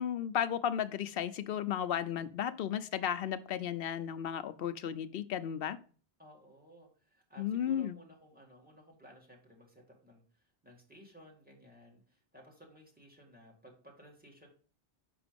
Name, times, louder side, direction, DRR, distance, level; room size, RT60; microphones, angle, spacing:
voice 1, 0.0-5.8 7.4-8.0, left 9 dB, 70° left, 11 dB, 0.8 m, -34 dB
voice 2, 6.2-14.5, equal, 10° right, 0 dB, 2.0 m, -57 dB
6.0 x 4.9 x 5.2 m, 0.41 s
omnidirectional pair, 1.1 m